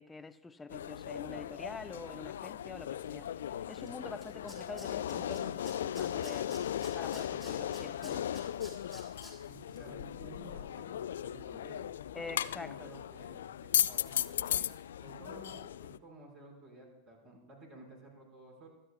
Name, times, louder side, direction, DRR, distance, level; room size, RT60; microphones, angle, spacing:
voice 1, 0.0-6.6 6.9-8.3 12.1-12.9, left 3 dB, 10° left, 0.6 m, -46 dB
sound 1, 0.7-16.0, left 10 dB, 60° left, 0.3 m, -37 dB
Tools, 3.9-4.0 4.2-5.4 5.7-9.3 9.7-9.8, equal, 10° right, 5.1 m, -51 dB
voice 2, 9.5-11.8 12.3-14.7 15.0-18.7, right 2 dB, 35° right, 5.1 m, -53 dB
25.5 x 10.0 x 2.4 m
figure-of-eight pair, 90°, 0 cm